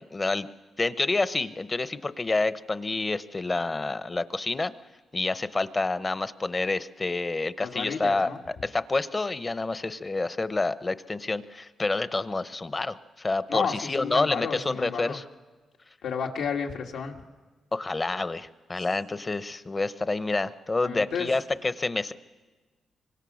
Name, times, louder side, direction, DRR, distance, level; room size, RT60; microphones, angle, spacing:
voice 1, 0.1-0.5 0.8-4.7 5.1-8.3 8.6-15.2 17.7-22.1, left 3 dB, 25° left, 14 dB, 0.8 m, -28 dB
voice 2, 7.6-8.4 13.5-15.2 16.0-17.2 20.8-21.3, left 6 dB, 85° left, 1 dB, 2.1 m, -31 dB
25.0 x 24.5 x 6.4 m, 1.3 s
cardioid pair, 90°, 0 cm